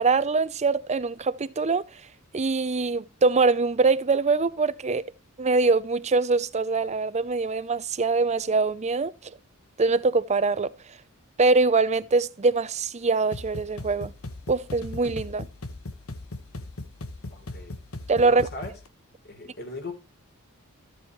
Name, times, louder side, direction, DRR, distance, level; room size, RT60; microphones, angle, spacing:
voice 1, 0.0-1.8 2.3-5.1 5.4-9.1 9.8-10.7 11.4-14.1 14.5-15.5 18.1-18.5, right 4 dB, 30° right, 0.6 m, -23 dB
sound 1, 13.3-18.9, left 2 dB, 70° left, 1.5 m, -39 dB
voice 2, 17.3-17.8 18.2-18.7 19.2-19.9, left 2 dB, 50° left, 3.4 m, -38 dB
13.5 x 7.7 x 3.1 m
head